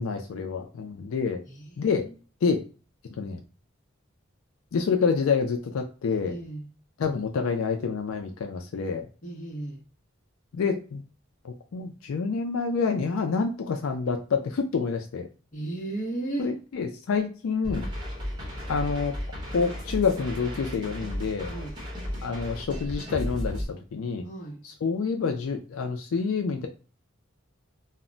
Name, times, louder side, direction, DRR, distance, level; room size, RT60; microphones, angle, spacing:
voice 1, 0.0-1.4 1.8-2.1 2.4-2.6 3.1-3.4 4.7-6.4 7.0-9.1 10.5-11.0 11.4-15.3 16.4-17.9 18.7-19.1 19.5-21.5 22.2-24.2 24.6-26.7, left 5 dB, 80° left, 0.4 m, -27 dB
voice 2, 1.5-2.1 6.2-6.7 9.2-9.8 15.5-16.5 21.5-21.8 24.2-24.6, right 2 dB, 35° left, 0.7 m, -35 dB
sound 1, 17.6-23.7, equal, 20° right, 0.8 m, -34 dB
2.1 x 2.1 x 3.7 m
head